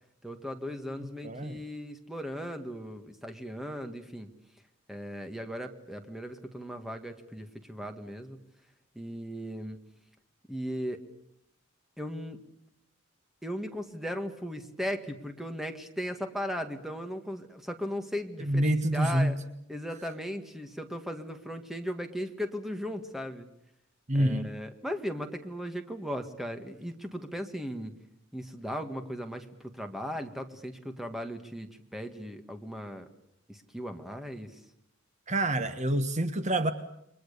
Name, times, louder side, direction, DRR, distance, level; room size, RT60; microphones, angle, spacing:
voice 1, 0.2-4.3 4.9-8.4 9.0-9.8 10.5-11.0 12.0-12.4 13.4-19.3 19.7-23.5 24.1-27.9 28.3-29.5 29.7-33.1 33.5-34.6, equal, ahead, 6 dB, 1.8 m, -37 dB
voice 2, 1.2-1.6 18.4-19.4 24.1-24.5 35.3-36.7, right 1 dB, 35° right, 9 dB, 1.3 m, -27 dB
29.0 x 23.5 x 6.8 m, 0.79 s
head